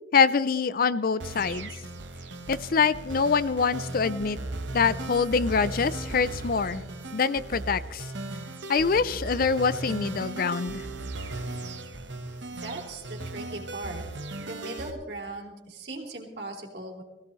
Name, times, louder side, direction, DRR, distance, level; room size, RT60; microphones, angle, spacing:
voice 1, 0.1-1.7 2.5-4.4 4.7-6.8 7.1-8.0 8.7-10.8, left 5 dB, 50° left, 16 dB, 0.5 m, -25 dB
sound 1, 1.2-14.9, right 2 dB, 80° right, 1.2 m, -37 dB
voice 2, 12.5-14.0 14.3-17.0, right 2 dB, 65° right, -1 dB, 3.1 m, -39 dB
21.0 x 16.0 x 3.2 m, 1.2 s
head